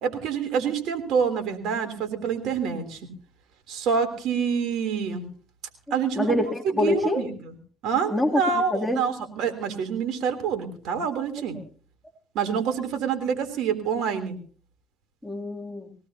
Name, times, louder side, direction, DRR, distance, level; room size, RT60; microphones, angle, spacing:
voice 1, 0.0-3.0 3.7-5.2 5.9-6.3 6.8-7.5 7.8-11.6 12.3-14.4, right 6 dB, 75° right, 7 dB, 3.4 m, -27 dB
voice 2, 5.9-7.2 8.1-9.0 15.2-15.9, left 1 dB, 5° left, 0 dB, 2.9 m, -26 dB
22.5 x 17.5 x 2.9 m, 0.42 s
supercardioid pair, 90°, 0 cm